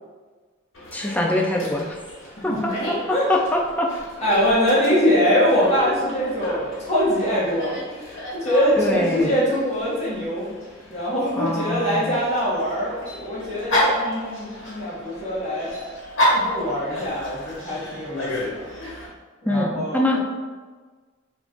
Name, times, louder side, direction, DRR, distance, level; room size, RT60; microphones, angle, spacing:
Dog, 0.7-19.1, equal, 75° left, 1.0 m, -31 dB
voice 1, 0.9-2.0 2.4-3.9 8.8-9.4 11.3-12.1 19.5-20.2, left 1 dB, 10° left, 0 dB, 0.3 m, -24 dB
voice 2, 2.4-3.3 4.2-10.5 10.9-15.7 16.3-18.7 19.4-20.2, equal, 35° left, -9 dB, 1.0 m, -23 dB
3.0 x 2.5 x 3.5 m, 1.4 s
head